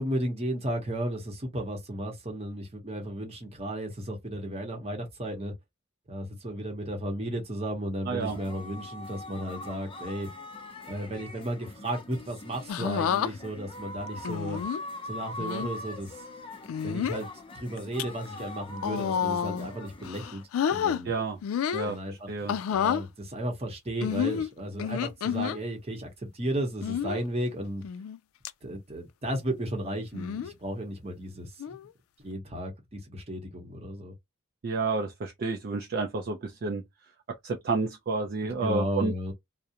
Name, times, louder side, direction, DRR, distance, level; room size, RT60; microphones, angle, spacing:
voice 1, 0.0-5.5 6.1-10.3 10.9-14.6 15.1-16.2 16.8-17.3 17.5-20.4 20.7-21.1 21.8-22.3 22.7-27.8 28.6-31.5 32.2-34.1 38.4-39.3, right 1 dB, 30° right, 0.9 m, -34 dB
voice 2, 8.1-8.4 21.1-21.4 21.7-22.6 34.6-36.8 37.4-39.1, right 3 dB, 45° right, 0.4 m, -30 dB
sound 1, 8.2-20.5, left 2 dB, 25° left, 0.5 m, -42 dB
sound 2, 12.7-13.3 14.2-14.8 15.4-15.7 16.7-17.2 17.8-18.0 18.8-19.7 20.0-21.0 21.4-21.9 22.5-23.0 24.0-25.6 26.8-27.2 27.8-28.2 28.4-28.5 30.1-30.5 31.6-31.9, left 8 dB, 80° left, 0.3 m, -29 dB
2.4 x 2.1 x 2.7 m
head